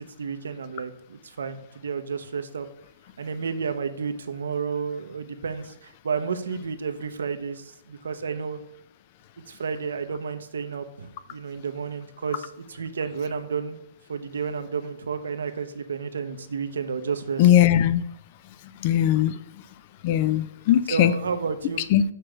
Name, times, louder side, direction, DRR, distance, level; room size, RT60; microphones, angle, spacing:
voice 1, 0.0-2.7 3.2-8.6 9.5-13.8 14.1-17.5 20.9-21.8, right 5 dB, 85° right, 9 dB, 0.7 m, -31 dB
voice 2, 17.4-18.0 18.8-19.4 20.0-21.1 21.9-22.0, left 11 dB, 45° left, 14 dB, 0.4 m, -19 dB
6.6 x 3.3 x 6.1 m, 0.75 s
hypercardioid pair, 140°, 0 cm